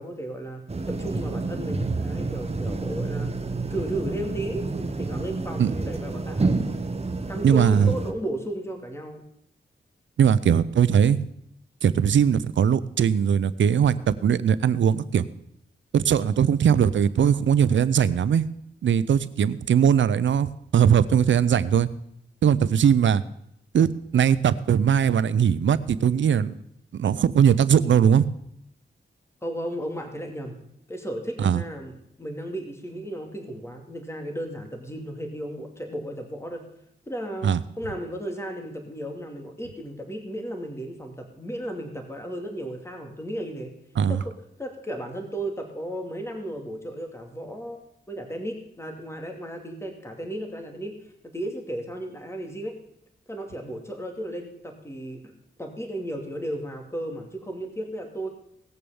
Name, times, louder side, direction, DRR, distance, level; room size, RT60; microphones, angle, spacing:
voice 1, 0.0-3.3 3.7-6.5 7.3-9.2 29.4-30.6 30.9-36.6 37.1-43.7 44.1-44.3 44.6-51.0 51.2-52.8 53.3-55.3 55.6-58.3, right 1 dB, 15° left, 3 dB, 2.6 m, -34 dB
sound 1, 0.7-8.1, right 3 dB, 35° right, 1.4 m, -29 dB
voice 2, 7.4-7.9 10.2-11.2 11.8-15.2 15.9-18.4 18.8-21.9 22.4-23.2 23.7-26.6 26.9-28.3 31.4-31.6 37.4-37.6 44.0-44.2, right 8 dB, 85° right, 16 dB, 0.7 m, -20 dB
18.0 x 6.9 x 7.1 m, 0.75 s
cardioid pair, 70°, 19 cm